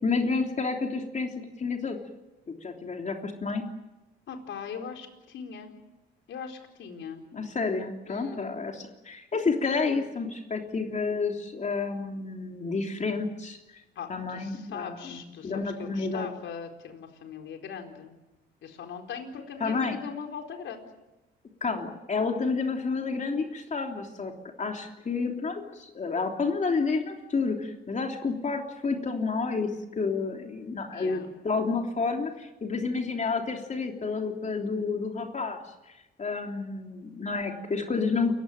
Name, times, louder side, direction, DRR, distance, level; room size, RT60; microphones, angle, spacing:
voice 1, 0.0-2.0 2.6-3.6 7.3-13.8 14.1-16.3 19.6-20.0 21.6-24.3 24.6-35.6 36.2-38.3, left 4 dB, 35° left, 2 dB, 3.3 m, -30 dB
voice 2, 4.3-5.7 6.3-7.2 8.1-8.5 14.0-18.1 18.6-20.9 30.9-31.3, left 6 dB, 75° left, 4 dB, 4.4 m, -40 dB
29.0 x 16.0 x 9.2 m, 1.0 s
cardioid pair, 90°, 20 cm